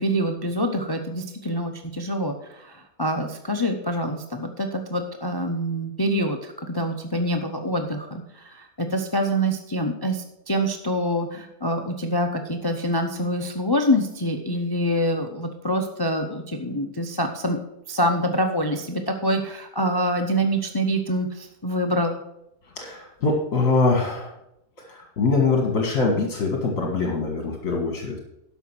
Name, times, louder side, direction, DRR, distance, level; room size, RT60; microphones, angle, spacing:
voice 1, 0.0-17.6 17.9-22.2, equal, 25° left, 5 dB, 0.5 m, -25 dB
voice 2, 22.8-24.3 24.8-28.2, left 3 dB, 55° left, 1 dB, 2.1 m, -23 dB
12.5 x 5.6 x 6.0 m, 0.82 s
omnidirectional pair, 1.7 m